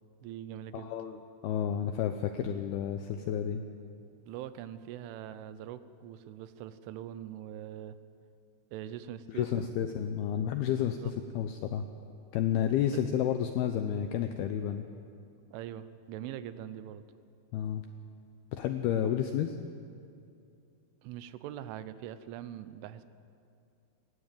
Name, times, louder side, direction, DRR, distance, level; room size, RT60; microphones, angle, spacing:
voice 1, 0.2-0.9 4.3-8.0 8.7-9.7 11.0-11.1 12.9-13.0 15.5-17.0 18.9-19.1 21.0-23.0, right 11 dB, 85° right, 13 dB, 3.3 m, -42 dB
voice 2, 0.7-3.6 9.3-11.8 12.3-14.9 17.5-17.8 18.5-19.5, left 9 dB, 85° left, 7 dB, 2.2 m, -31 dB
20.5 x 17.0 x 9.0 m, 2.5 s
omnidirectional pair, 5.4 m